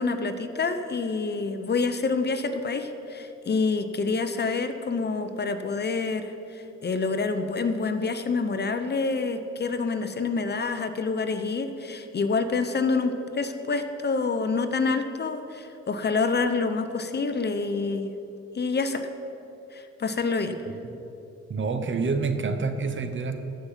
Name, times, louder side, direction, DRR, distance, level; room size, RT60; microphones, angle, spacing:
voice 1, 0.0-18.1 18.5-19.1 19.7-20.5, left 4 dB, 35° left, 9 dB, 0.7 m, -27 dB
voice 2, 20.6-21.0 21.5-23.4, right 4 dB, 40° right, 8 dB, 1.1 m, -28 dB
14.0 x 5.8 x 7.3 m, 2.9 s
cardioid pair, 90°, 30 cm